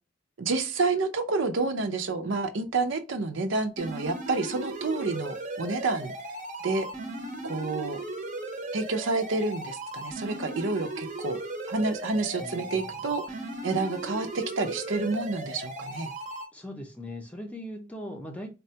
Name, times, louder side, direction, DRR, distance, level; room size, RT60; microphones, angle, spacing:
voice 1, 0.4-6.1 6.6-6.9 7.4-8.0 8.7-11.4 11.7-13.4 13.6-16.1, right 3 dB, 80° right, 0.6 m, -29 dB
sound 1, 3.8-16.4, right 1 dB, 40° right, 0.7 m, -37 dB
voice 2, 12.4-13.1 16.5-18.5, equal, 5° left, 0.6 m, -40 dB
4.1 x 2.2 x 2.7 m
head